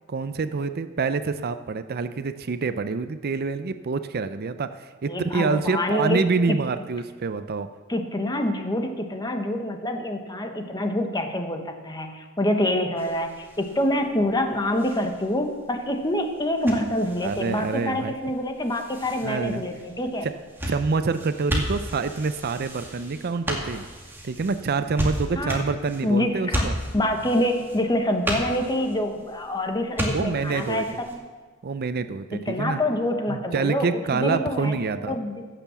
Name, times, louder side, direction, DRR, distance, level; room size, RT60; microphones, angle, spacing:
voice 1, 0.1-7.7 17.2-18.1 19.2-19.7 20.2-20.3 20.7-23.8 24.2-26.8 30.1-30.8 31.6-32.8 33.3-35.2, right 4 dB, 45° right, 11 dB, 0.5 m, -26 dB
voice 2, 5.1-6.6 7.9-20.3 25.4-25.6 26.0-26.7 26.9-31.2 32.3-34.8 35.1-35.5, left 1 dB, 20° left, 5 dB, 1.2 m, -26 dB
sound 1, 13.0-31.2, equal, 10° right, 2.1 m, -35 dB
16.0 x 7.0 x 7.0 m, 1.5 s
head